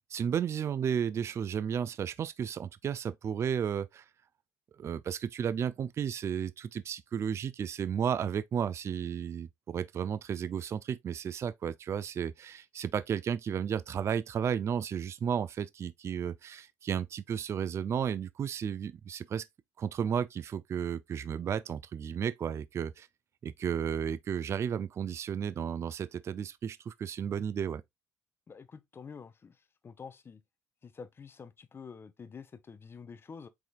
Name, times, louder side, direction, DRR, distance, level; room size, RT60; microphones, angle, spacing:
voice 1, 0.1-4.0 4.8-19.5 19.8-23.1 23.4-27.8, right 8 dB, 40° right, 0.4 m, -33 dB
voice 2, 28.5-29.6 29.8-30.4 30.8-33.5, left 5 dB, 35° left, 0.7 m, -48 dB
4.8 x 3.9 x 2.2 m
hypercardioid pair, 65°, 7 cm